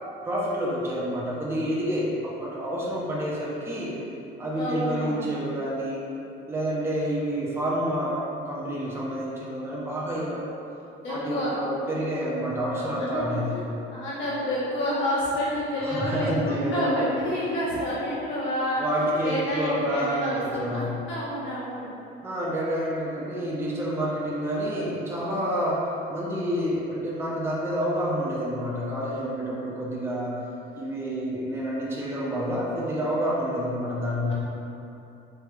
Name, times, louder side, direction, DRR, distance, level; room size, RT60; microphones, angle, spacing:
voice 1, 0.2-4.0 4.4-6.0 6.5-10.4 11.1-13.6 15.8-17.1 18.8-21.0 22.2-30.4 30.8-34.3, equal, 10° right, -6 dB, 0.6 m, -28 dB
voice 2, 4.5-5.2 11.0-11.5 12.7-13.4 13.9-18.8 19.2-20.8 21.1-21.8, left 1 dB, 65° left, -9 dB, 1.4 m, -29 dB
3.4 x 3.3 x 3.3 m, 2.8 s
cardioid pair, 100°, 21 cm